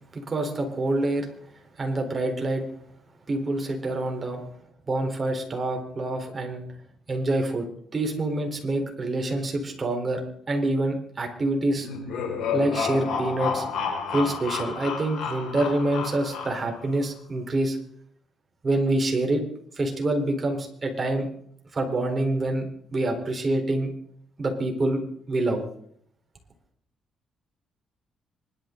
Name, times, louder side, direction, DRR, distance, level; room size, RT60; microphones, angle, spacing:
voice 1, 0.1-1.3 1.8-2.6 3.3-4.4 4.9-6.6 7.1-7.6 7.9-10.2 10.5-11.9 12.5-13.6 14.1-17.8 18.6-19.4 19.7-21.3 21.7-23.9 24.4-25.0 25.3-25.6, right 2 dB, 35° right, 3 dB, 4.2 m, -26 dB
sound 1, 11.8-16.9, left 6 dB, 75° left, 5.5 m, -31 dB
25.5 x 12.5 x 4.0 m, 0.65 s
cardioid pair, 90°, 0 cm